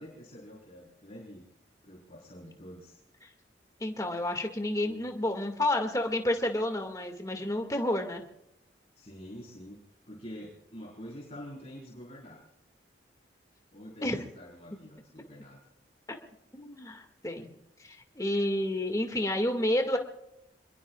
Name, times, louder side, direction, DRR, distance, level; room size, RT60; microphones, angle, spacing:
voice 1, 0.0-1.4 1.8-3.0 4.8-5.0 9.0-12.4 13.7-15.6, equal, 35° left, -4 dB, 4.8 m, -47 dB
voice 2, 3.8-8.2 14.0-14.2 16.5-17.5 17.8-20.0, left 1 dB, 20° left, 4 dB, 2.1 m, -30 dB
27.5 x 21.5 x 2.4 m, 0.83 s
head